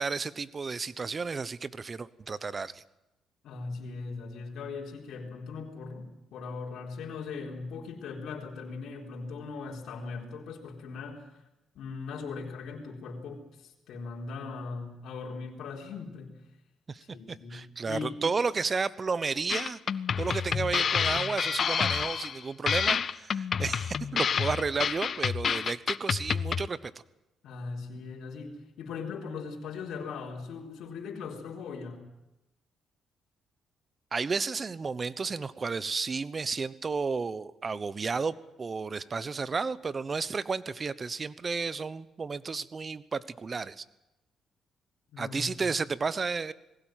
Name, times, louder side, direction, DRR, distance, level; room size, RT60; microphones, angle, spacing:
voice 1, 0.0-2.8 16.9-19.8 20.2-26.9 34.1-43.8 45.2-46.5, right 4 dB, 35° right, 17 dB, 0.9 m, -32 dB
voice 2, 3.4-11.3 11.7-16.3 17.0-18.2 27.4-32.0 45.1-45.7, left 4 dB, 75° left, -1 dB, 4.0 m, -39 dB
sound 1, 19.5-26.7, left 7 dB, 50° left, 0.7 m, -29 dB
20.0 x 17.0 x 9.2 m, 0.95 s
cardioid pair, 90°, 0 cm